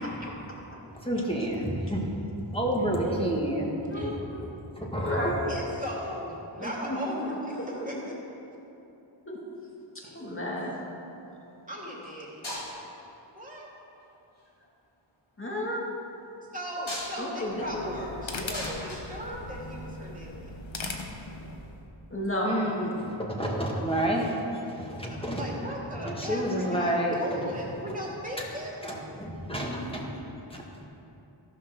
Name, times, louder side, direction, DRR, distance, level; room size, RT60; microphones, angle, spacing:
voice 1, 1.0-2.0 2.3-3.7 4.8-5.3 22.4-25.5 26.0-27.4 28.8-30.2 30.5-30.8, right 1 dB, 10° left, -2 dB, 1.9 m, -29 dB
voice 2, 3.9-4.4 5.0-5.6 6.6-8.1 9.3-9.4 9.9-10.9 15.4-15.9 17.2-17.9 22.1-22.8, left 1 dB, 25° left, -4 dB, 2.3 m, -33 dB
voice 3, 5.5-8.1 10.0-10.2 11.7-12.5 13.3-13.7 16.5-20.5 25.1-28.8, equal, 15° right, -5 dB, 2.7 m, -37 dB
sound 1, 10.0-10.8 11.9-12.1 12.4-13.0 14.0-14.5 16.5-20.0 21.3-21.4, left 1 dB, 90° left, 2.7 m, -40 dB
sound 2, 17.4-21.9, left 2 dB, 75° left, 1.0 m, -39 dB
13.5 x 5.8 x 6.2 m, 2.9 s
wide cardioid pair, 60°, 47 cm